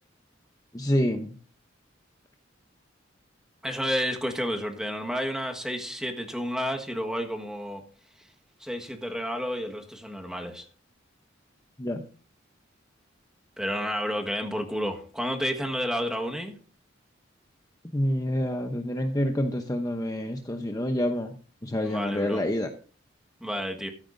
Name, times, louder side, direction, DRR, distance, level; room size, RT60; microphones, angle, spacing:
voice 1, 0.7-1.3 11.8-12.0 17.9-21.3 21.6-22.7, left 1 dB, 20° left, 0.8 m, -27 dB
voice 2, 3.6-7.8 8.2-8.3 8.6-10.6 13.6-16.6 21.7-22.4 23.4-23.9, equal, 5° right, 1.5 m, -31 dB
14.5 x 13.0 x 2.6 m
head